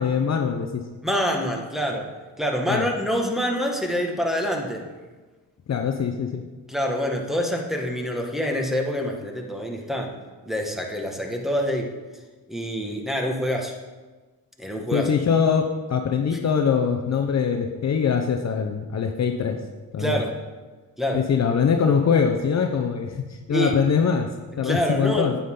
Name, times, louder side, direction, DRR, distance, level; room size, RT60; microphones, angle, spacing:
voice 1, 0.0-0.8 2.7-2.9 5.7-6.4 14.9-19.6 19.9-20.2 21.1-24.3 24.6-25.4, left 6 dB, 45° left, 4 dB, 0.9 m, -23 dB
voice 2, 1.0-2.1 2.4-4.9 6.7-10.1 10.4-11.9 12.5-13.7 14.6-15.1 16.3-16.4 20.0-20.3 21.0-21.2 23.5-23.8 24.6-25.3, equal, ahead, 0 dB, 1.8 m, -26 dB
9.2 x 8.6 x 3.9 m, 1.3 s
supercardioid pair, 65°, 39 cm